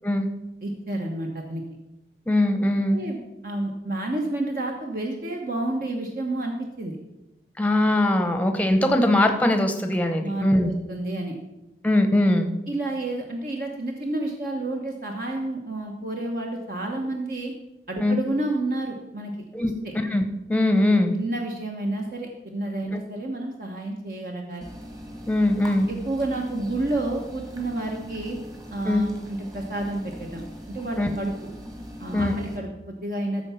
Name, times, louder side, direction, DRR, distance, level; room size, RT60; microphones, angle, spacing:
voice 1, 0.6-1.6 2.9-7.0 10.2-11.3 12.7-17.5 17.9-19.3 19.6-19.9 21.1-24.7 25.9-28.4 28.7-31.3 32.0-33.5, right 2 dB, 50° right, 1 dB, 1.1 m, -30 dB
voice 2, 2.3-3.0 7.6-10.7 11.8-12.5 18.0-18.2 19.5-19.7 20.0-21.1 25.3-25.9 28.9-29.0 31.0-31.2 32.1-32.4, left 1 dB, 10° left, 6 dB, 0.8 m, -21 dB
sound 1, 24.6-32.6, equal, 20° right, 1.5 m, -40 dB
14.0 x 4.6 x 5.6 m, 0.96 s
head